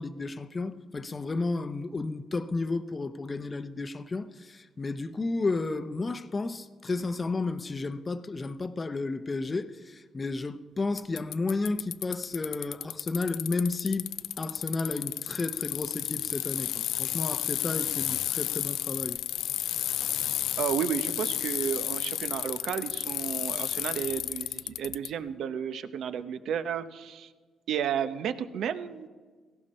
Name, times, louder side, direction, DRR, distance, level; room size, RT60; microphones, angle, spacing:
voice 1, 0.0-14.1 14.4-19.2, left 3 dB, 30° left, 0.7 m, -32 dB
Bicycle, 11.0-25.1, left 12 dB, 85° left, 0.3 m, -32 dB
voice 2, 20.6-27.3 27.7-29.1, right 8 dB, 75° right, 0.8 m, -32 dB
17.5 x 15.5 x 4.3 m
cardioid pair, 90°, 0 cm